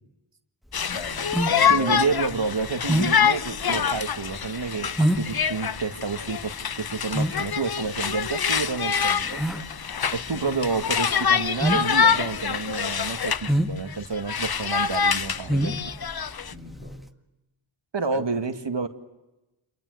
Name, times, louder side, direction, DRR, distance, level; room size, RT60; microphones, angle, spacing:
Conversation, 0.7-13.5 13.9-16.5, left 7 dB, 45° left, 0.9 m, -26 dB
sound 1, 0.7-17.1, right 1 dB, ahead, 1.9 m, -29 dB
voice 1, 0.9-2.0 10.3-10.6 16.5-17.0 18.1-18.3, left 3 dB, 75° left, 5 dB, 5.3 m, -37 dB
voice 2, 1.7-4.9 5.2-9.4 10.1-16.1 17.9-18.9, right 4 dB, 60° right, 7 dB, 2.2 m, -29 dB
27.5 x 23.0 x 8.0 m, 1.0 s
cardioid pair, 40°, 49 cm